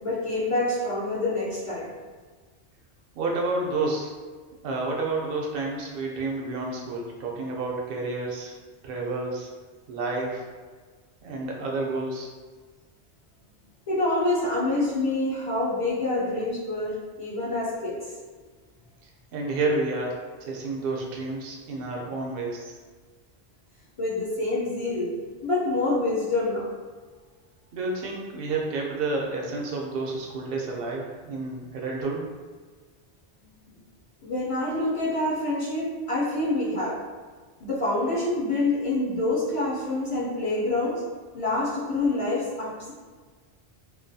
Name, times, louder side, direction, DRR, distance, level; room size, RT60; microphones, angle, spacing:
voice 1, 0.0-1.9 13.9-18.0 24.0-26.7 34.2-37.0 37.6-41.0 41.3-42.9, left 2 dB, 45° left, -7 dB, 0.5 m, -26 dB
voice 2, 3.2-4.1 4.6-8.5 8.8-9.5 9.9-10.5 11.2-12.3 19.3-22.7 27.7-32.3, right 3 dB, 65° right, -1 dB, 0.7 m, -30 dB
2.3 x 2.2 x 2.6 m, 1.4 s
omnidirectional pair, 1.1 m